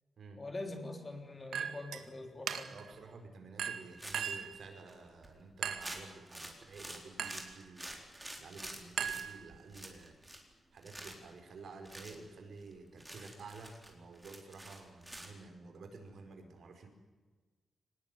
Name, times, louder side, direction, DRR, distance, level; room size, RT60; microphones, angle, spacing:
voice 1, 0.4-2.7, left 2 dB, 25° left, 4 dB, 3.5 m, -43 dB
Chink clink, 1.5-2.0 2.5-2.9 3.6-4.6 5.6-6.0 7.2-7.5 9.0-9.8, right 8 dB, 85° right, 1.9 m, -38 dB
voice 2, 2.7-10.1 10.7-16.9, right 3 dB, 65° right, 5 dB, 4.7 m, -51 dB
sound 1, 4.0-4.4 4.9-5.0 5.2-5.4 5.8-9.2 9.7-10.5 10.8-11.3 11.8-12.2 12.6-12.7 13.0-15.3, right 1 dB, 10° right, 4.0 m, -48 dB
25.0 x 19.5 x 9.2 m, 1.3 s
wide cardioid pair, 150°, 0 cm